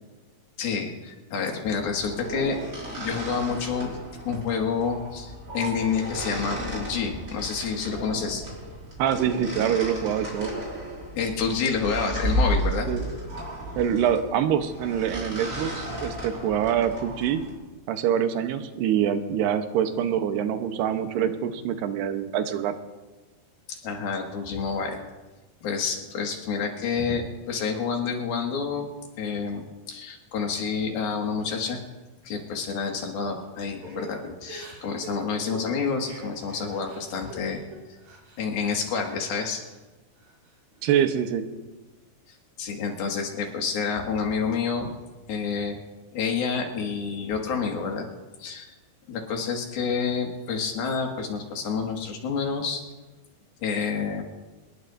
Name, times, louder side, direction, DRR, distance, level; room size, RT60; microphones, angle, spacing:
voice 1, 0.6-2.6 2.9-3.9 4.3-8.4 11.2-12.9 23.7-25.0 25.6-28.9 29.2-31.8 32.2-37.6 38.4-39.6 42.3-44.9 45.3-45.8 46.1-48.1 48.4-48.7 49.1-52.8 53.6-54.2, left 5 dB, 70° left, 1 dB, 3.6 m, -28 dB
sound 1, 1.7-17.5, equal, 20° right, 5.8 m, -33 dB
voice 2, 9.0-10.5 12.9-13.0 13.8-17.4 17.9-22.7 40.8-41.4, right 9 dB, 90° right, 7 dB, 3.1 m, -25 dB
Crying sobbing / Breathing, 33.8-38.4 38.8-39.8 40.2-40.9, right 3 dB, 70° right, 5.1 m, -44 dB
25.5 x 20.5 x 2.6 m, 1.2 s
omnidirectional pair, 4.6 m